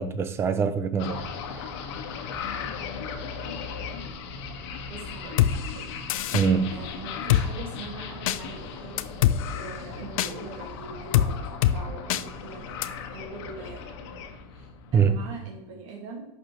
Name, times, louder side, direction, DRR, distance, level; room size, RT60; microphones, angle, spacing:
voice 1, 0.0-1.7 6.3-6.8 14.9-15.2, right 6 dB, 15° right, 0.4 m, -24 dB
sound 1, 1.0-15.4, left 6 dB, 50° left, 1.3 m, -37 dB
voice 2, 4.9-5.9 6.7-9.2 9.5-12.8 13.1-14.1 14.5-16.3, right 3 dB, 70° right, 2.1 m, -42 dB
Drum kit, 5.4-5.5 6.1-6.5 7.3-7.4 8.3-8.4 9.0-9.4 10.2-10.3 11.1-11.3 11.6-11.8 12.1-12.2 12.8-12.9, left 12 dB, 80° left, 0.6 m, -21 dB
11.0 x 6.7 x 3.2 m
supercardioid pair, 175°, 18 cm